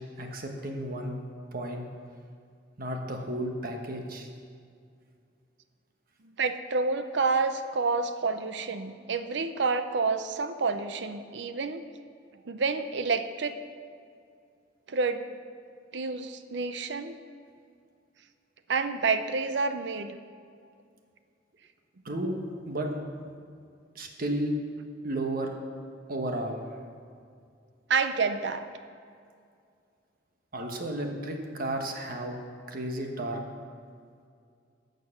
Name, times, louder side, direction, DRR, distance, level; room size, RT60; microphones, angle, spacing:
voice 1, 0.2-1.2 1.5-1.8 2.8-4.3 22.0-22.9 23.9-24.5 25.0-25.5 26.1-26.6 30.5-32.4 32.7-33.4, right 1 dB, 55° right, 3 dB, 1.3 m, -33 dB
voice 2, 6.4-11.8 12.5-13.6 14.9-15.3 15.9-17.2 18.7-20.2 27.9-28.7, right 4 dB, 70° right, 9 dB, 0.6 m, -28 dB
12.0 x 6.7 x 7.2 m, 2.3 s
head